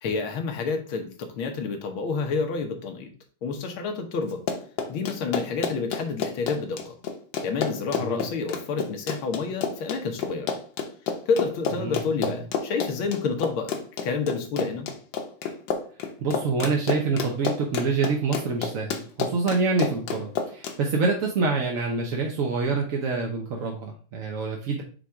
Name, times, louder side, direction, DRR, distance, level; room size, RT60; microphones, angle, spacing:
voice 1, 0.0-3.1 3.4-4.4 4.9-7.0 7.4-10.5 11.3-14.9, left 4 dB, 85° left, 5 dB, 1.9 m, -29 dB
Run, 4.3-20.8, left 6 dB, 70° left, 1.6 m, -30 dB
voice 2, 11.8-12.3 16.2-24.8, right 4 dB, 55° right, 0 dB, 1.0 m, -26 dB
6.0 x 3.5 x 4.7 m, 0.40 s
omnidirectional pair, 2.2 m